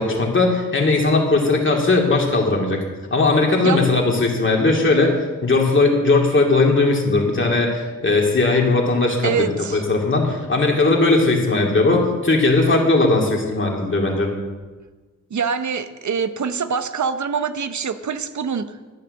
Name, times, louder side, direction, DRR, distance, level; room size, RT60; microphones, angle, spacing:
voice 1, 0.0-2.8 3.1-5.1 5.4-14.3, left 3 dB, 40° left, -1 dB, 2.6 m, -18 dB
voice 2, 9.2-9.9 15.3-18.8, right 6 dB, 65° right, 11 dB, 0.8 m, -24 dB
12.5 x 9.6 x 6.6 m, 1.3 s
wide cardioid pair, 120°, 32 cm